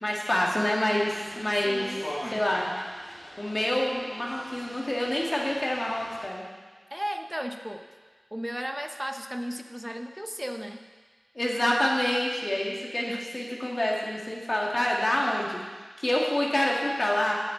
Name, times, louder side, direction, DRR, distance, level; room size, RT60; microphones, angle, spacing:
voice 1, 0.0-1.9 2.3-2.7 3.4-6.4 11.4-15.6 16.0-17.4, left 1 dB, 40° left, -2 dB, 2.1 m, -27 dB
sound 1, 1.0-6.3, left 1 dB, 80° left, 2.0 m, -42 dB
voice 2, 1.6-2.4 6.9-7.9 8.3-10.8 13.0-13.3, equal, 10° right, 6 dB, 0.7 m, -35 dB
15.5 x 7.1 x 4.0 m, 1.4 s
wide cardioid pair, 65°, 0 cm